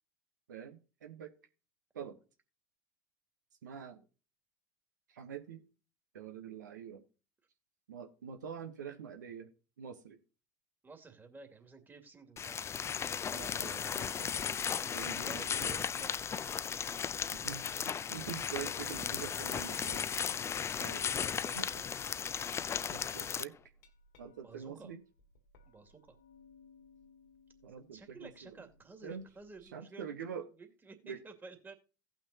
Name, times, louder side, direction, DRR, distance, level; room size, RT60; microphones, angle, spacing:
voice 1, 0.5-1.3 1.9-2.2 3.6-4.0 5.1-5.6 6.1-7.0 7.9-9.5 9.8-10.2 13.3-14.4 14.9-15.8 17.3-20.5 20.8-21.1 21.5-21.7 22.9-23.5 24.2-25.0 27.6-28.6 29.0-29.3 29.7-30.4 31.0-31.2, right 7 dB, 85° right, 1.0 m, -45 dB
voice 2, 10.8-12.7 15.1-16.3 20.4-21.8 24.4-24.9 25.7-26.2 27.9-31.7, right 4 dB, 20° right, 2.3 m, -53 dB
sound 1, 12.4-23.4, left 7 dB, 30° left, 0.5 m, -36 dB
Glass, 23.6-29.7, left 4 dB, 75° left, 1.9 m, -63 dB
17.0 x 6.0 x 2.8 m
hypercardioid pair, 75°, 10 cm